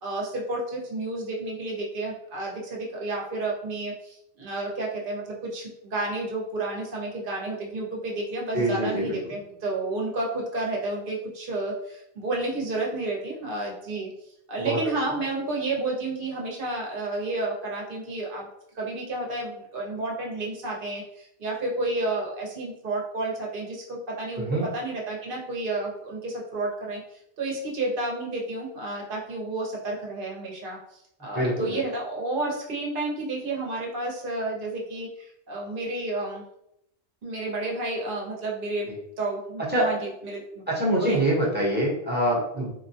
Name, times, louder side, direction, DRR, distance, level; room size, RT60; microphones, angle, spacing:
voice 1, 0.0-14.1 14.5-18.5 18.7-27.0 27.4-36.4 37.2-38.9 39.2-41.2, right 2 dB, 55° right, -2 dB, 0.9 m, -31 dB
voice 2, 8.5-9.2 14.6-14.8 24.4-24.7 31.3-31.8 39.7-39.9 40.7-42.7, right 1 dB, 10° right, -6 dB, 0.8 m, -25 dB
3.7 x 2.2 x 2.7 m, 0.78 s
omnidirectional pair, 1.2 m